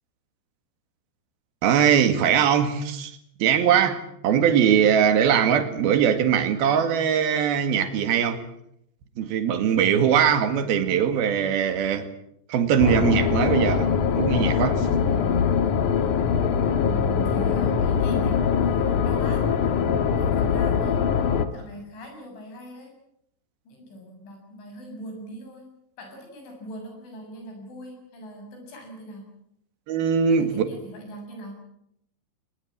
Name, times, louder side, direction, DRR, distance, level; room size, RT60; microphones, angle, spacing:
voice 1, 1.6-3.1 3.4-8.4 9.2-12.1 12.5-13.9 14.2-14.9 29.9-30.7, right 8 dB, 60° right, 9 dB, 3.5 m, -21 dB
sound 1, 12.8-21.4, left 7 dB, 60° left, 2.4 m, -22 dB
voice 2, 16.8-19.5 20.2-21.0 21.5-22.9 23.7-25.7 26.0-29.3 30.3-31.6, equal, 85° left, 3 dB, 9.7 m, -40 dB
22.0 x 21.0 x 8.7 m, 0.75 s
omnidirectional pair, 5.3 m